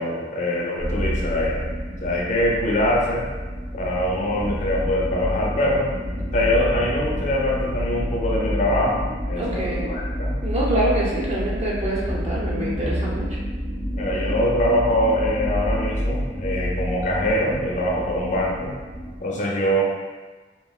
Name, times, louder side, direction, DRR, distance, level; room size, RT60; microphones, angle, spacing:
voice 1, 0.0-3.2 3.7-5.9 6.3-10.4 13.9-18.7 19.2-19.8, left 1 dB, 40° left, -3 dB, 0.4 m, -23 dB
sound 1, 0.8-19.2, equal, 85° right, 1.0 m, -28 dB
voice 2, 9.4-9.9 10.4-13.3, right 1 dB, 35° right, -5 dB, 0.6 m, -25 dB
3.0 x 2.3 x 2.3 m, 1.3 s
head